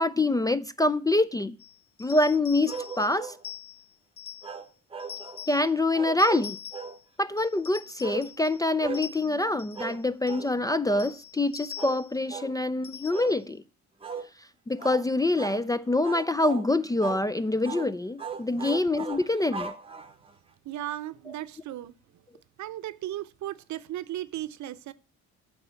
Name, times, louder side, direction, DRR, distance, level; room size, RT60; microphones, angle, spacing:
voice 1, 0.0-1.6 2.0-3.3 5.5-6.6 7.2-13.6 14.7-19.7, left 2 dB, 15° left, 0.3 m, -25 dB
sound 1, 1.6-4.6 5.0-5.7 6.2-7.0 7.4-8.6 8.9-10.0 10.3-10.5 11.0-12.2 12.8-13.4, left 10 dB, 70° left, 0.9 m, -44 dB
sound 2, 2.7-3.4 4.4-5.5 5.9-7.0 8.0-8.3 8.8-9.1 9.8-10.0 10.3-10.5 10.9-11.1 11.8-12.0 12.3-12.6 13.1-13.4 14.0-14.3 14.8-15.1 15.4-15.6 16.0-16.7 17.0-17.3 17.6-17.9 18.2-20.3, right 5 dB, 20° right, 0.9 m, -38 dB
voice 2, 20.6-22.2 22.6-24.9, right 13 dB, 70° right, 0.7 m, -36 dB
8.6 x 4.1 x 6.9 m
cardioid pair, 90°, 30 cm